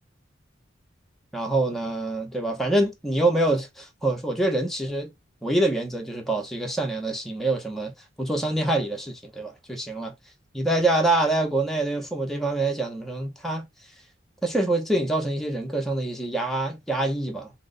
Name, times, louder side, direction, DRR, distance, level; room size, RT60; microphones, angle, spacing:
voice 1, 1.3-5.1 5.4-7.9 8.2-10.1 10.5-13.7 14.4-17.5, right 2 dB, ahead, 0.7 m, -25 dB
3.0 x 2.0 x 3.7 m
head